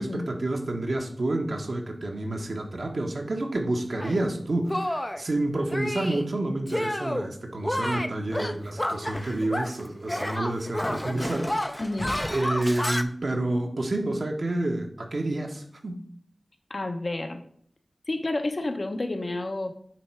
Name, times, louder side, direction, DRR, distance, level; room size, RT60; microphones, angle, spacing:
voice 1, 0.0-11.8 12.3-16.0, right 2 dB, 65° right, 2 dB, 1.2 m, -29 dB
Shatter, 4.0-4.2 4.7-5.2 5.7-6.3 6.7-7.3 7.6-9.8 10.1-13.0, left 1 dB, 15° left, 0.5 m, -30 dB
voice 2, 11.8-12.1 16.7-17.4 18.1-19.7, left 2 dB, 50° left, 5 dB, 0.8 m, -30 dB
8.9 x 3.3 x 4.5 m, 0.64 s
wide cardioid pair, 60°, 0 cm